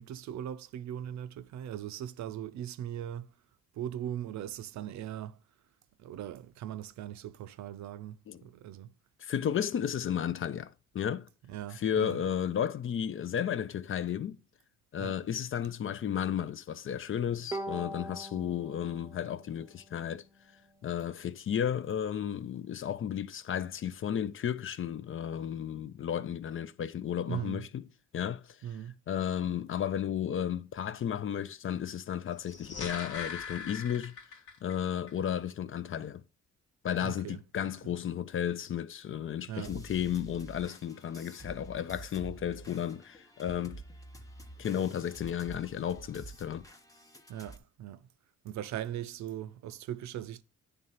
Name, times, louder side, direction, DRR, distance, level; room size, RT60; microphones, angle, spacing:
voice 1, 0.0-3.3 3.7-5.4 6.0-8.9 11.5-12.2 15.0-15.2 27.3-27.6 28.6-28.9 37.0-37.4 39.5-39.8 47.3-48.1 48.4-50.4, right 11 dB, 70° right, 0.5 m, -39 dB
voice 2, 9.2-11.3 11.7-14.4 14.9-20.2 20.8-27.8 28.1-28.6 29.1-34.1 34.6-36.2 36.8-43.8 44.6-46.7, left 9 dB, 45° left, 0.5 m, -33 dB
Bowed string instrument, 17.5-20.8, right 1 dB, 10° right, 0.6 m, -43 dB
sound 1, 32.3-34.8 35.1-35.2, left 6 dB, 85° left, 1.6 m, -41 dB
sound 2, 39.6-47.6, right 2 dB, 10° left, 0.9 m, -49 dB
9.2 x 3.4 x 5.5 m
cardioid pair, 90°, 30 cm